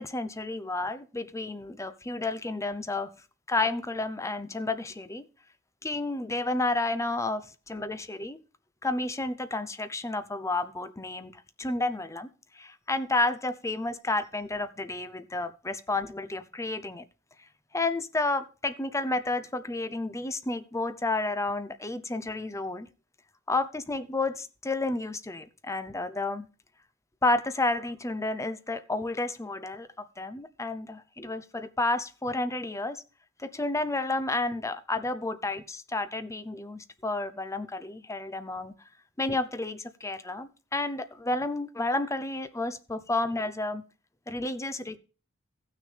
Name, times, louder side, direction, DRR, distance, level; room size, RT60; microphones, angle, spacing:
voice 1, 0.0-3.1 3.5-5.2 5.8-8.4 8.8-12.3 12.5-17.0 17.7-22.9 23.5-26.5 27.2-33.0 33.4-38.7 39.2-43.8 44.3-45.0, left 2 dB, 15° left, 0.7 m, -31 dB
15.0 x 6.3 x 3.4 m
head